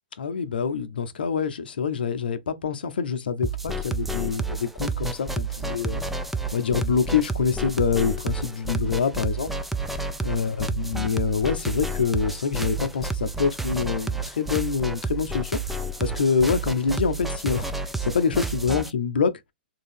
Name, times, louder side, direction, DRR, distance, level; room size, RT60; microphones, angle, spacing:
voice 1, 0.2-6.0 6.5-9.5 10.2-15.6 16.0-17.7 18.0-19.3, left 6 dB, 70° left, 0.7 m, -25 dB
sound 1, 3.4-18.9, right 3 dB, 5° right, 0.4 m, -30 dB
3.7 x 2.7 x 3.4 m
figure-of-eight pair, 115°, 5 cm